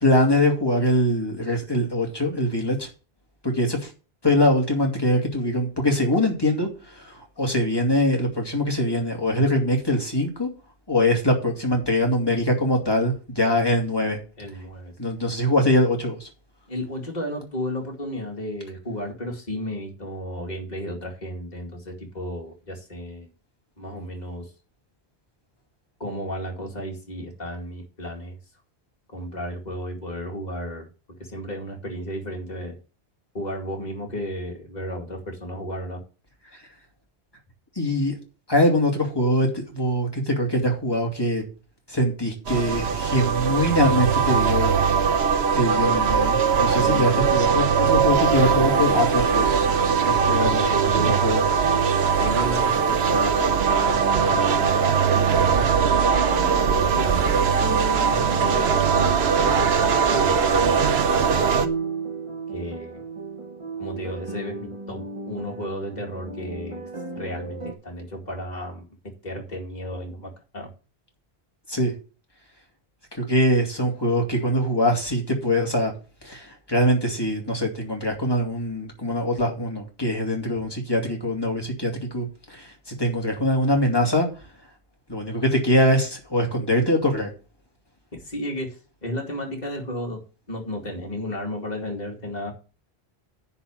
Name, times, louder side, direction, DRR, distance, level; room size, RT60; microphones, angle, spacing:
voice 1, 0.0-2.9 3.4-3.9 4.2-10.5 10.9-14.2 15.0-16.3 37.8-38.2 38.5-41.4 41.9-44.8 45.6-49.6 50.3-50.6 51.2-51.4 71.7-71.9 73.2-75.9 76.2-84.3 85.1-87.3, left 1 dB, 25° left, 1 dB, 2.6 m, -23 dB
voice 2, 14.4-14.9 16.7-23.3 23.8-24.5 26.0-28.4 29.1-30.9 31.2-32.8 33.3-36.0 46.8-47.3 50.0-51.4 52.2-53.6 53.9-55.7 56.6-61.6 62.5-63.0 63.8-66.8 67.1-70.7 88.1-88.8 89.0-90.2 90.5-92.5, equal, 40° left, 0 dB, 2.5 m, -33 dB
sound 1, 42.5-61.7, right 6 dB, 80° right, 1.1 m, -21 dB
sound 2, 48.4-67.7, right 4 dB, 30° right, 1.5 m, -34 dB
9.9 x 4.4 x 7.6 m, 0.33 s
omnidirectional pair, 1.1 m